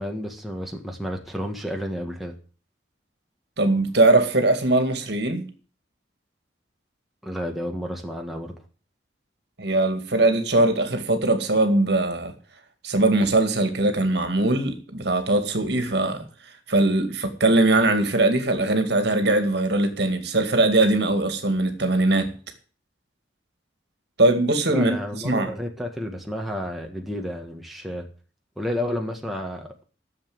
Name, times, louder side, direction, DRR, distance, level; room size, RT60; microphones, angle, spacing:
voice 1, 0.0-2.3 7.2-8.5 24.7-28.1 28.6-29.8, equal, ahead, 1.6 m, -31 dB
voice 2, 3.6-5.5 9.6-12.3 12.8-16.3 16.7-22.3 24.2-25.0 25.2-25.5, right 2 dB, 60° right, 2.1 m, -21 dB
13.0 x 7.3 x 7.8 m
head